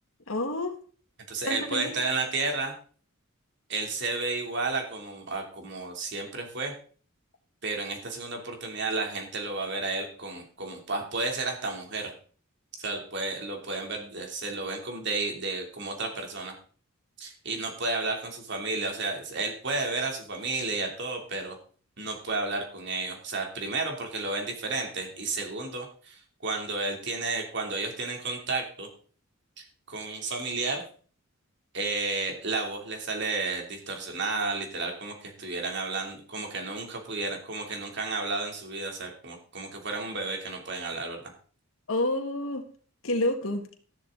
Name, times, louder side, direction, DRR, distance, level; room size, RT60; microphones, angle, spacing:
voice 1, 0.3-0.7 1.4-1.9 41.9-42.6 43.0-43.6, left 1 dB, 70° left, 4 dB, 1.8 m, -28 dB
voice 2, 1.3-2.7 3.7-6.7 7.6-12.1 12.8-16.5 17.2-21.6 22.0-28.9 29.9-30.8 31.7-41.2, right 3 dB, 55° right, 2 dB, 3.1 m, -32 dB
13.0 x 11.5 x 3.9 m, 0.43 s
head